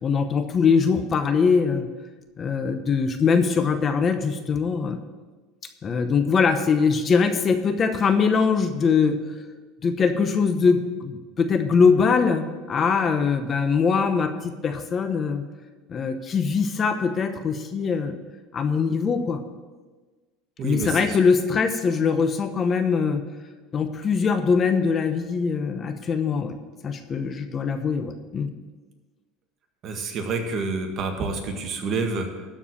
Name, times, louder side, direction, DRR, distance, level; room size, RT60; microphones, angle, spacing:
voice 1, 0.0-1.9 2.4-5.0 5.8-9.2 9.8-15.4 15.9-18.1 18.5-19.4 20.6-23.2 23.7-26.6 26.8-28.5, left 5 dB, 30° left, 8 dB, 0.9 m, -22 dB
voice 2, 20.6-21.2 29.8-32.5, right 4 dB, 40° right, 4 dB, 1.7 m, -28 dB
12.5 x 4.7 x 8.6 m, 1.3 s
supercardioid pair, 125°, 0 cm